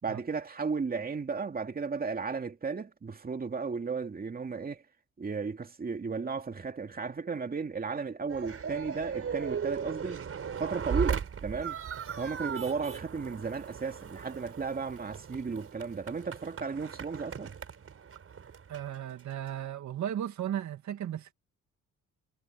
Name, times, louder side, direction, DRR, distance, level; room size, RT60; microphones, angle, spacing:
voice 1, 0.0-4.8 5.2-10.2 10.6-11.8 12.2-17.5, right 5 dB, 30° right, 2.5 m, -34 dB
sound 1, 8.3-19.6, right 7 dB, 50° right, 5.0 m, -37 dB
voice 2, 18.7-21.3, right 10 dB, 70° right, 2.2 m, -35 dB
cardioid pair, 90°, 30 cm